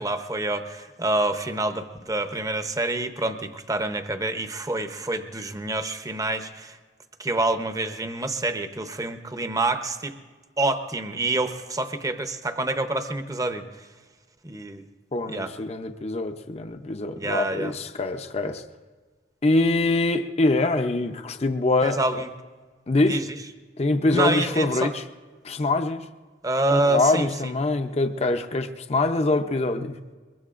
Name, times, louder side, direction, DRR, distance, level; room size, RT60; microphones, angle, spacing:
voice 1, 0.0-6.8 7.2-10.2 10.6-13.6 14.4-14.8 15.3-15.5 17.2-17.7 21.8-22.3 23.1-23.2 24.1-24.9 26.4-27.5, right 2 dB, 20° right, 8 dB, 0.8 m, -27 dB
voice 2, 15.1-18.6 19.4-22.0 22.9-23.2 23.8-25.0 25.4-26.1 26.7-30.0, left 2 dB, 35° left, 7 dB, 0.6 m, -24 dB
22.5 x 22.0 x 2.5 m, 1.4 s
head